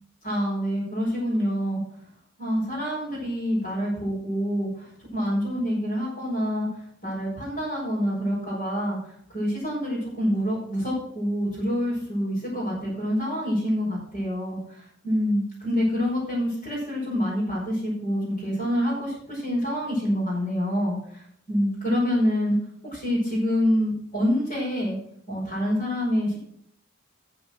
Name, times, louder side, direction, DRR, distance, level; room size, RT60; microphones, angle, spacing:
voice 1, 0.2-1.8 2.4-6.7 7.0-9.0 9.3-21.2 21.5-22.6 22.9-25.0 25.3-26.4, equal, 35° left, -9 dB, 5.5 m, -26 dB
12.5 x 7.0 x 6.2 m, 0.68 s
head